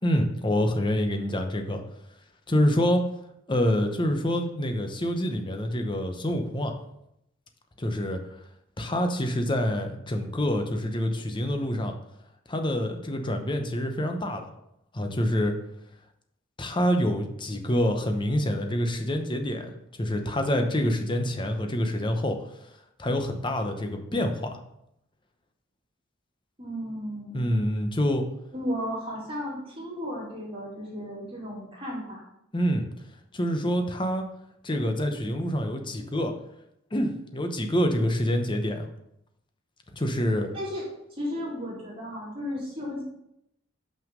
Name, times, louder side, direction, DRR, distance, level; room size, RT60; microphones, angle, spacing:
voice 1, 0.0-1.8 2.5-3.0 3.5-6.8 7.8-8.2 8.8-11.9 12.5-14.5 14.9-15.5 16.6-19.7 20.0-22.4 23.0-24.6 27.3-28.2 32.5-32.9 33.3-34.2 34.6-36.3 36.9-38.9 39.9-40.5, equal, 25° left, 5 dB, 0.8 m, -26 dB
voice 2, 26.6-27.5 28.5-32.2 40.5-43.0, equal, 30° right, -5 dB, 2.7 m, -34 dB
5.9 x 5.7 x 5.3 m, 0.79 s
head